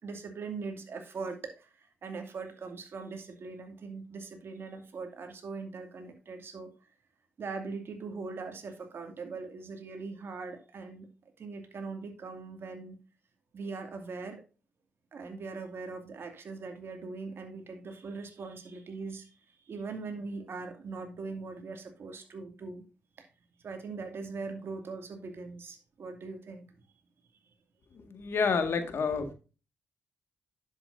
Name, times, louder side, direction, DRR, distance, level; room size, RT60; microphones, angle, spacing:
voice 1, 0.0-6.7 7.4-11.1 11.4-13.0 13.5-14.4 15.1-19.3 19.7-22.8 23.2-23.3 23.6-26.7, right 4 dB, 55° right, 2.4 m, -41 dB
voice 2, 27.9-29.3, left 5 dB, 60° left, 1.9 m, -29 dB
10.5 x 7.6 x 2.7 m
hypercardioid pair, 40°, 5 cm